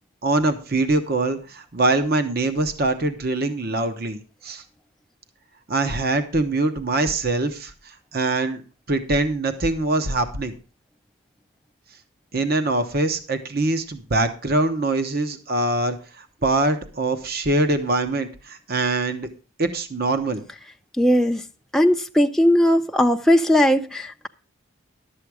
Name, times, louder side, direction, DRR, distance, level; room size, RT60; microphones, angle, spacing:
voice 1, 0.2-4.6 5.7-8.6 8.9-10.5 12.3-19.3 19.6-20.4, right 2 dB, 45° right, 1.0 m, -23 dB
voice 2, 21.0-21.4 21.7-24.3, equal, ahead, 0.4 m, -18 dB
12.0 x 7.6 x 4.8 m
head